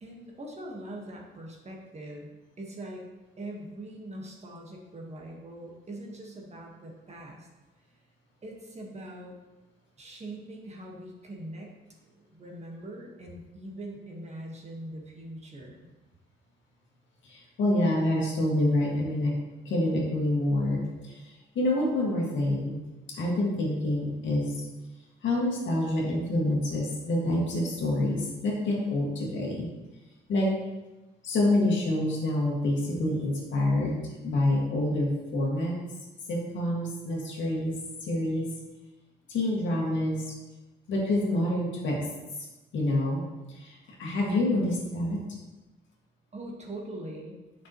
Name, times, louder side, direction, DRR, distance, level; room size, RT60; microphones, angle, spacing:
voice 1, 0.0-3.0 3.4-7.5 8.4-9.4 10.0-11.7 12.0-15.9 20.8-20.9 46.3-47.4, right 1 dB, 35° right, -1 dB, 1.6 m, -42 dB
voice 2, 17.2-19.3 19.7-21.2 21.5-22.8 23.1-24.7 25.2-29.7 30.3-30.6 31.2-35.7 36.3-38.5 39.3-40.2 40.9-42.1 42.7-45.2, left 1 dB, 70° left, -2 dB, 2.1 m, -27 dB
7.5 x 6.0 x 3.1 m, 1.1 s
cardioid pair, 90°, 20 cm